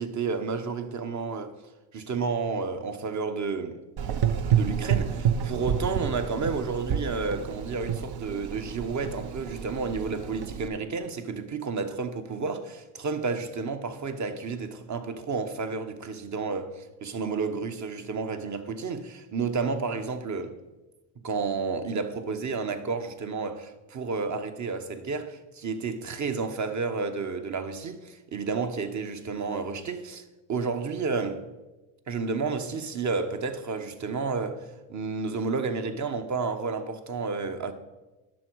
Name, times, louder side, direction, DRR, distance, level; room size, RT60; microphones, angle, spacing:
voice 1, 0.0-1.5 1.9-3.8 4.5-20.6 21.2-30.2 30.5-31.4 32.1-37.7, right 4 dB, 45° right, 1.1 m, -31 dB
Gurgling / Engine, 4.0-10.7, right 8 dB, 60° right, 0.8 m, -29 dB
10.5 x 6.3 x 4.6 m
supercardioid pair, 70°, 41 cm